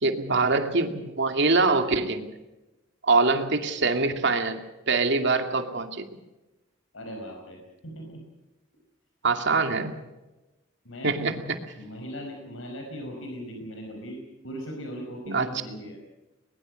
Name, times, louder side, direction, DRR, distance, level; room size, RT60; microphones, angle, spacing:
voice 1, 0.0-2.3 3.0-6.0 9.2-10.0 11.0-11.6 15.3-15.5, right 3 dB, 65° right, 6 dB, 2.4 m, -24 dB
voice 2, 6.9-8.2 10.8-11.2 11.8-16.0, equal, 80° left, 3 dB, 5.0 m, -39 dB
21.5 x 21.5 x 6.5 m, 1.0 s
head